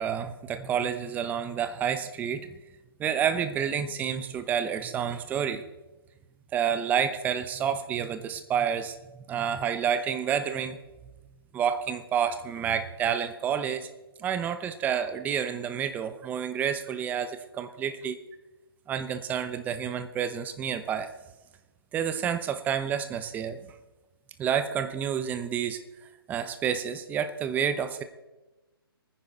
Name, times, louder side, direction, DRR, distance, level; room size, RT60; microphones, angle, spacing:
voice 1, 0.0-2.5 3.0-5.6 6.5-8.9 9.3-10.8 11.5-13.9 14.2-18.2 18.9-21.1 21.9-23.6 24.4-25.8 26.3-28.0, right 8 dB, 15° right, 10 dB, 0.8 m, -29 dB
23.0 x 9.9 x 4.0 m, 1.1 s
figure-of-eight pair, 140°, 13 cm